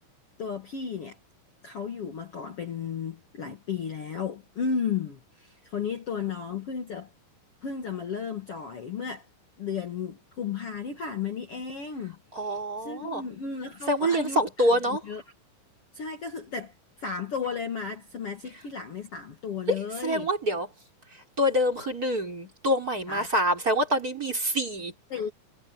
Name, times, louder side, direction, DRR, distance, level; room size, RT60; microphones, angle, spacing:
voice 1, 0.4-1.2 1.6-7.1 7.6-9.3 9.6-12.2 12.8-14.4 14.9-15.2 15.9-20.3 23.1-23.3 25.1-25.3, left 6 dB, 70° left, 1.4 m, -34 dB
voice 2, 12.3-13.3 13.9-15.0 19.7-20.7 21.1-24.9, equal, 20° right, 4.2 m, -26 dB
omnidirectional pair, 5.7 m